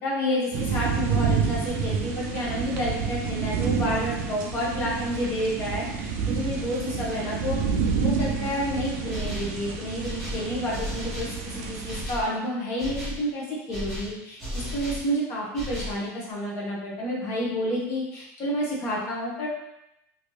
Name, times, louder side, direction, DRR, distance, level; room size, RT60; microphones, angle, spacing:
voice 1, 0.0-7.6 8.0-19.5, equal, 30° left, -4 dB, 0.8 m, -30 dB
sound 1, 0.5-12.1, right 6 dB, 50° right, 0.4 m, -29 dB
sound 2, 9.1-9.6 10.0-11.4 11.9-12.3 12.8-13.2 13.7-15.1 15.5-16.0, equal, ahead, 0.7 m, -35 dB
3.1 x 2.6 x 3.0 m, 0.88 s
supercardioid pair, 175°, 9 cm